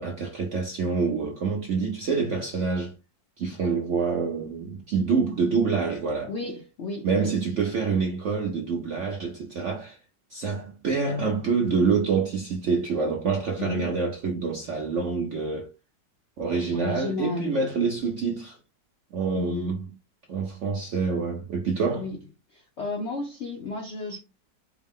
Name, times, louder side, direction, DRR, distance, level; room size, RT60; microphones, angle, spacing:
voice 1, 0.0-2.9 3.4-6.3 7.0-10.0 10.3-15.7 16.4-18.6 19.1-19.8 20.3-22.1, right 5 dB, 70° right, 0.7 m, -26 dB
voice 2, 6.3-7.3 13.6-14.0 16.7-17.6 19.3-19.8 21.9-22.2 22.5-24.2, left 3 dB, 65° left, 0.7 m, -33 dB
4.6 x 2.0 x 3.5 m
omnidirectional pair, 1.9 m